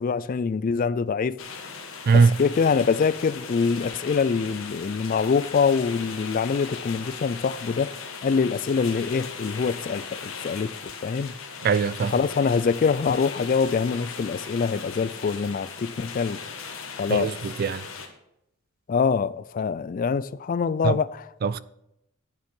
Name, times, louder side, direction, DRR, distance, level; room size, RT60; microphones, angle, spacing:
voice 1, 0.0-1.4 2.1-7.9 8.2-10.7 11.0-11.3 12.1-16.4 17.0-17.3 18.9-21.2, left 5 dB, 40° left, 0.3 m, -24 dB
sound 1, 1.4-18.1, left 5 dB, 70° left, 1.5 m, -38 dB
voice 2, 11.6-12.1 17.1-17.8 20.8-21.0 21.4-21.6, right 5 dB, 45° right, 0.3 m, -21 dB
9.3 x 7.1 x 5.4 m
head